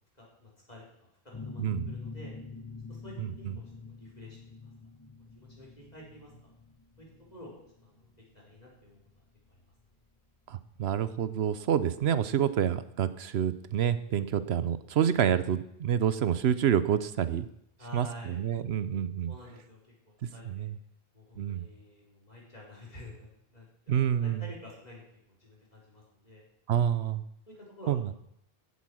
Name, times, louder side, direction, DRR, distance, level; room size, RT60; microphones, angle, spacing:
voice 1, 0.1-2.3 2.9-3.5 3.8-4.7 5.3-6.5 7.0-7.5 7.8-9.6 17.8-18.4 19.3-20.7 21.1-26.5 27.5-28.1, left 1 dB, 40° left, -4 dB, 4.5 m, -50 dB
sound 1, 1.3-10.7, left 4 dB, 20° left, 1.1 m, -46 dB
voice 2, 1.6-1.9 3.2-3.5 10.5-17.5 17.9-19.3 20.5-20.8 21.4-21.6 23.9-24.4 26.7-27.2 27.9-28.0, right 9 dB, 75° right, 14 dB, 0.9 m, -28 dB
15.5 x 8.2 x 6.2 m, 0.75 s
omnidirectional pair, 1.1 m